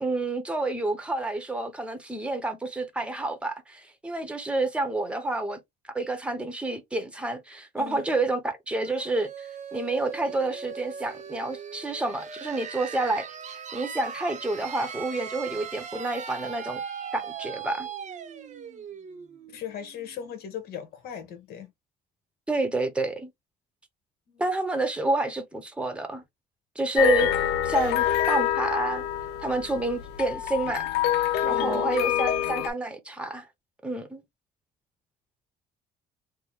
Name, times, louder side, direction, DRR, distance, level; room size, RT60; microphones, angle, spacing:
voice 1, 0.0-5.6 5.9-16.8 17.1-17.9 22.5-23.3 24.4-26.2 26.8-27.3 27.6-29.0 29.4-30.9 31.4-33.5 33.8-34.2, right 2 dB, 5° right, 0.9 m, -29 dB
voice 2, 7.8-8.1 19.5-21.7 24.3-24.4 31.5-31.8, left 9 dB, 65° left, 1.3 m, -38 dB
sound 1, 8.8-20.4, right 7 dB, 45° right, 0.7 m, -39 dB
sound 2, 27.0-32.7, left 11 dB, 90° left, 0.5 m, -26 dB
3.6 x 2.1 x 3.0 m
cardioid pair, 110°, 17 cm